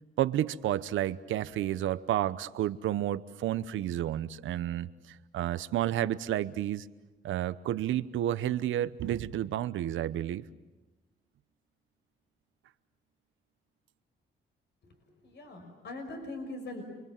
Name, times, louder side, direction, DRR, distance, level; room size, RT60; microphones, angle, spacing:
voice 1, 0.2-6.9 7.2-10.4, right 12 dB, 75° right, 14 dB, 1.0 m, -31 dB
voice 2, 14.8-16.8, left 2 dB, 60° left, 4 dB, 5.9 m, -42 dB
30.0 x 23.5 x 7.5 m, 1.1 s
cardioid pair, 90°, 20 cm